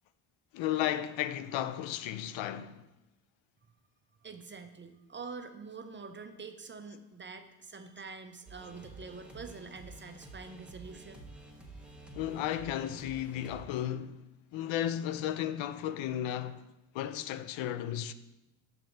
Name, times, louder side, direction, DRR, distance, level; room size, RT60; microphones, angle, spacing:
voice 1, 0.5-2.8 12.1-16.6 16.9-18.1, left 11 dB, 65° left, 0.5 m, -34 dB
voice 2, 4.2-11.2, right 4 dB, 25° right, 0.5 m, -46 dB
sound 1, 8.5-13.6, right 2 dB, ahead, 1.1 m, -50 dB
5.8 x 3.9 x 5.2 m
supercardioid pair, 70°, 49 cm